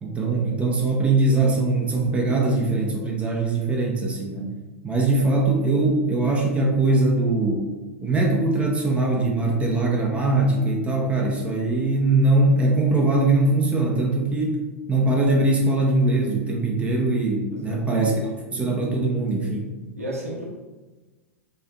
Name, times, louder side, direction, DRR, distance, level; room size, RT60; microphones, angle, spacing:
voice 1, 0.0-4.5 4.8-7.7 8.0-14.6 14.9-19.7, right 2 dB, 15° right, -1 dB, 0.5 m, -21 dB
voice 2, 17.5-18.1 20.0-20.4, equal, 85° right, -5 dB, 0.9 m, -33 dB
4.2 x 2.5 x 2.3 m, 1.2 s
figure-of-eight pair, 95°, 8 cm